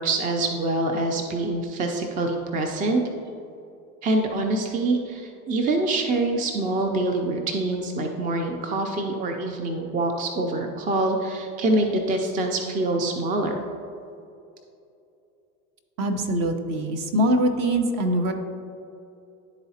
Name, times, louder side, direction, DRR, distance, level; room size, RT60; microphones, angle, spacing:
voice 1, 0.0-3.0 4.0-13.6, right 2 dB, 20° right, 3 dB, 0.4 m, -25 dB
voice 2, 16.0-18.3, right 1 dB, 45° right, 6 dB, 0.9 m, -23 dB
11.0 x 4.0 x 2.8 m, 2.7 s
hypercardioid pair, 100°, 46 cm